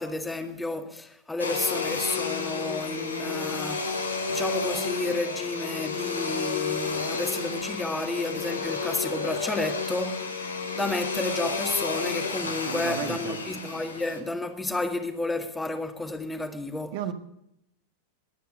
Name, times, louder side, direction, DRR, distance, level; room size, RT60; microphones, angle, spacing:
voice 1, 0.0-3.9 4.3-17.0, left 2 dB, 10° left, 1.8 m, -31 dB
Domestic sounds home sounds, 1.4-14.2, left 4 dB, 75° left, 2.5 m, -31 dB
voice 2, 12.4-13.4 16.9-17.1, right 10 dB, 50° right, 1.5 m, -34 dB
21.5 x 9.1 x 6.7 m
figure-of-eight pair, 90°, 0 cm